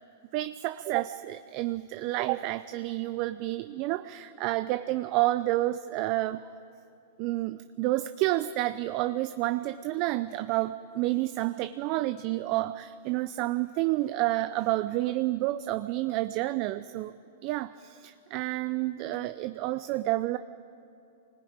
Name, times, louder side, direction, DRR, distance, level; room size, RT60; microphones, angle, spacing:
voice 1, 0.3-6.4 7.2-17.2 17.4-20.4, right 17 dB, 45° right, 12 dB, 0.6 m, -29 dB
25.0 x 19.5 x 8.8 m, 2.7 s
hypercardioid pair, 120°, 0 cm